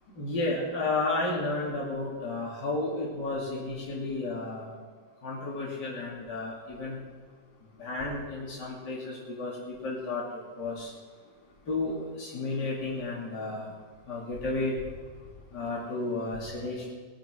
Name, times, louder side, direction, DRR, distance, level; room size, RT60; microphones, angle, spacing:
voice 1, 0.1-4.8 5.2-7.0 7.8-10.2 10.6-10.9 11.7-13.7 14.1-14.8 15.5-16.9, left 2 dB, 70° left, -5 dB, 3.3 m, -32 dB
20.0 x 8.7 x 6.3 m, 1.5 s
omnidirectional pair, 1.9 m